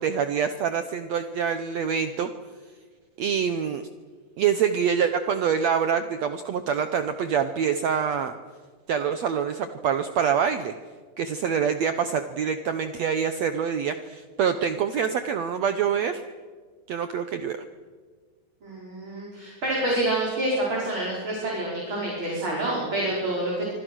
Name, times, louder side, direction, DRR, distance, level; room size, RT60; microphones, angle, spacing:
voice 1, 0.0-2.3 3.2-3.8 4.4-8.3 8.9-10.7 11.2-16.2 16.9-17.6, right 7 dB, 80° right, 9 dB, 1.5 m, -25 dB
voice 2, 18.6-23.7, right 1 dB, 30° right, -4 dB, 5.6 m, -27 dB
25.5 x 25.0 x 6.3 m, 1.5 s
omnidirectional pair, 4.3 m